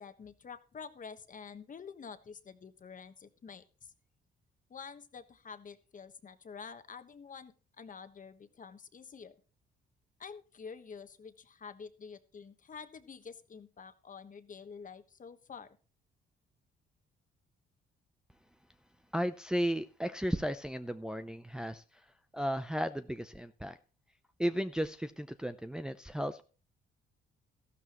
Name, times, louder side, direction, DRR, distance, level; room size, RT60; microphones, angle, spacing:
voice 1, 0.0-3.9 4.7-9.4 10.2-15.7, left 6 dB, 40° left, 10 dB, 1.3 m, -48 dB
voice 2, 19.1-21.8 22.3-23.8 24.4-26.4, equal, 5° right, 8 dB, 0.6 m, -34 dB
13.5 x 12.5 x 3.0 m, 0.37 s
cardioid pair, 90°, 20 cm